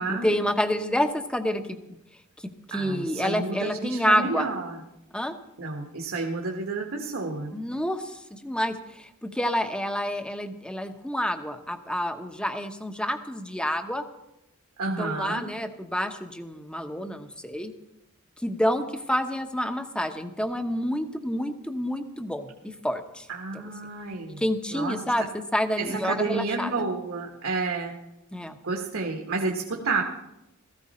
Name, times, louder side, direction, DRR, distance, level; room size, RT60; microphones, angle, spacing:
voice 1, 0.1-1.8 2.7-4.5 5.1-5.3 7.5-14.0 15.0-17.7 18.4-22.5 22.8-23.3 23.5-23.6 24.4-26.7 28.3-28.6, equal, 5° left, 7 dB, 0.9 m, -28 dB
voice 2, 2.7-4.8 5.6-7.5 14.8-15.5 23.3-24.4 24.7-25.0 25.8-28.0 28.6-30.0, right 3 dB, 65° right, 1 dB, 1.5 m, -30 dB
16.5 x 14.5 x 4.3 m, 0.91 s
head